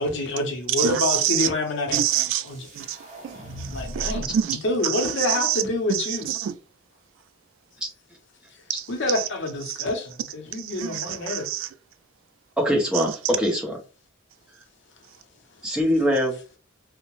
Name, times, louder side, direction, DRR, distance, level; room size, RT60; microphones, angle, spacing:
voice 1, 0.0-2.0 2.4-2.7 3.7-4.3 4.6-6.3 8.9-11.5, left 2 dB, 60° left, 0.7 m, -27 dB
voice 2, 0.8-1.5 1.9-2.5 2.8-3.0 3.2-3.7 3.9-5.6 5.9-6.5 8.8-8.9 9.2-9.3 9.7-9.8 10.6-11.7 12.9-13.1, right 11 dB, 75° right, 0.3 m, -26 dB
sound 1, 2.5-4.4, equal, 35° right, 1.0 m, -37 dB
voice 3, 12.6-13.8 15.6-16.4, equal, 5° right, 0.8 m, -23 dB
2.7 x 2.0 x 2.9 m
head